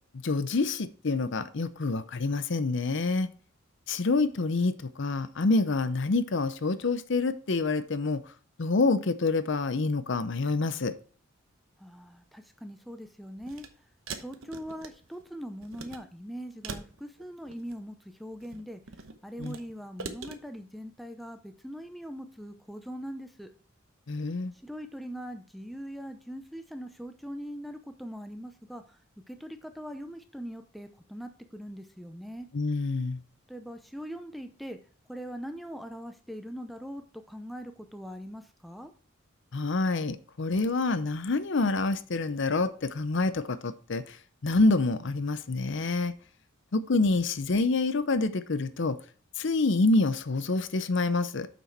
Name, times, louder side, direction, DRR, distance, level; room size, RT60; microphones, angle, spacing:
voice 1, 0.1-3.3 3.9-8.2 8.6-10.9 19.4-19.5 24.1-24.5 32.5-33.2 39.5-44.2 44.4-46.1 46.7-49.0 49.4-51.5, left 3 dB, 60° left, 13 dB, 0.6 m, -27 dB
voice 2, 11.8-13.7 14.1-18.8 19.2-23.5 24.6-29.0 29.3-32.5 33.5-34.8 35.1-38.9, equal, ahead, 6 dB, 0.6 m, -41 dB
sound 1, 13.4-13.7 14.1-15.2 15.6-16.0 16.6-17.8 18.3-19.6 20.0-20.4, right 4 dB, 75° right, 1.0 m, -41 dB
7.0 x 6.2 x 4.5 m, 0.41 s
head